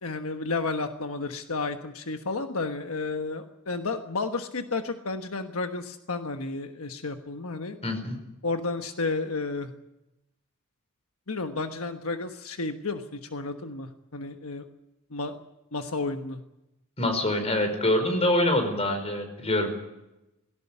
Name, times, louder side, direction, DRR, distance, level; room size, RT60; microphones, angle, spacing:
voice 1, 0.0-7.8 8.4-9.7 11.3-14.7 15.1-15.4 15.7-16.4, left 3 dB, 80° left, 7 dB, 1.3 m, -32 dB
voice 2, 7.8-8.2 17.0-19.7, left 1 dB, 30° left, 6 dB, 4.9 m, -25 dB
18.5 x 17.0 x 9.8 m, 0.93 s
head